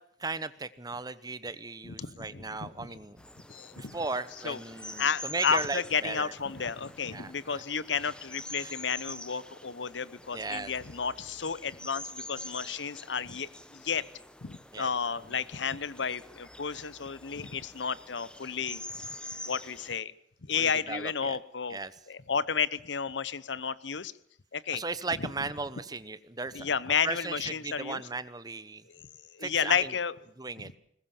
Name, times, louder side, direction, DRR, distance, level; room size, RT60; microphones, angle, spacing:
voice 1, 0.2-3.2 3.7-6.3 6.6-6.7 7.1-7.6 8.6-8.7 10.3-10.7 14.7-14.9 20.5-21.4 21.7-21.9 24.7-26.7 27.0-28.8 29.4-29.9 30.4-30.7, right 3 dB, 20° right, 16 dB, 1.0 m, -36 dB
voice 2, 1.8-3.0 3.5-4.0 4.4-4.6 5.0-14.0 14.4-18.8 19.5-20.1 20.5-21.8 22.1-24.1 24.5-24.8 25.2-25.3 26.5-28.0 28.9-29.0 29.3-30.1, left 6 dB, 85° left, 19 dB, 0.9 m, -32 dB
sound 1, 3.2-20.0, left 1 dB, 5° left, 1.3 m, -46 dB
21.5 x 20.5 x 7.2 m, 0.71 s
head